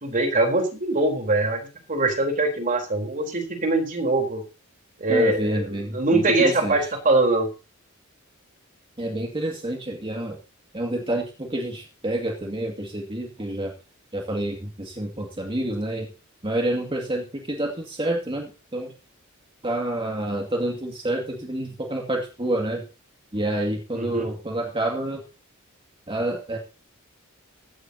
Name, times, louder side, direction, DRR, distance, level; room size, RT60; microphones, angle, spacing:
voice 1, 0.0-1.6 1.9-4.4 5.0-5.6 5.9-7.5 23.9-24.3, right 2 dB, 40° right, 3 dB, 4.0 m, -22 dB
voice 2, 5.1-6.9 9.0-10.4 10.7-13.7 14.1-16.1 16.4-18.9 19.6-22.9 23.3-25.2 26.1-26.6, right 1 dB, 25° right, 1 dB, 2.3 m, -28 dB
15.5 x 14.5 x 2.9 m, 0.32 s
head